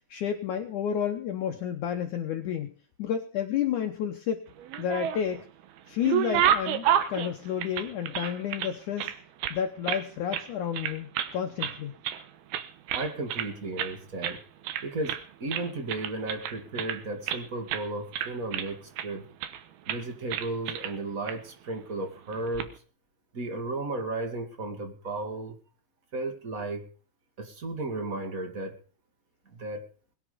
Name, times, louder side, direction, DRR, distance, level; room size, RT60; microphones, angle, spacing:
voice 1, 0.1-4.5 4.8-5.5 5.9-9.1 9.5-11.9, left 9 dB, 70° left, 4 dB, 2.1 m, -31 dB
sound 1, 4.6-5.4 5.8-8.7 9.0-10.0 10.3-10.5 10.7-11.3 11.6-12.2 12.5-13.5 13.8-14.0 14.2-14.4 14.6-15.2 15.5-17.4 17.7-17.9 18.1-19.1 19.4-19.6 19.9-20.0 20.3-20.9 21.3-21.4 22.3-22.7, right 10 dB, 75° right, 3.0 m, -30 dB
voice 2, 12.9-14.4 14.8-19.3 19.9-22.7 23.3-25.6 26.1-26.9 27.4-28.8 29.5-29.8, right 2 dB, 30° right, 5 dB, 1.9 m, -34 dB
21.0 x 10.5 x 5.1 m, 0.39 s
omnidirectional pair, 4.6 m